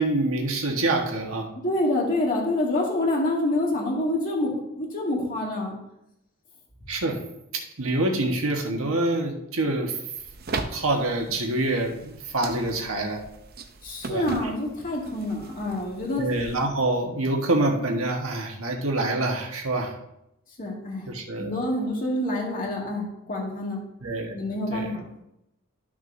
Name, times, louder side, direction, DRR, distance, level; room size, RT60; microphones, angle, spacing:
voice 1, 0.0-1.5 6.9-7.2 7.5-10.0 10.7-13.2 14.1-14.5 16.2-19.9 21.1-21.6 24.0-24.3 24.7-24.9, right 2 dB, 75° right, 1 dB, 1.4 m, -26 dB
voice 2, 1.6-5.8 13.8-16.3 20.6-21.1 21.4-23.8 24.3-25.1, left 1 dB, 40° left, -2 dB, 2.3 m, -27 dB
sound 1, 10.2-16.7, right 3 dB, 45° right, 0.7 m, -38 dB
13.0 x 6.2 x 2.7 m, 0.84 s
head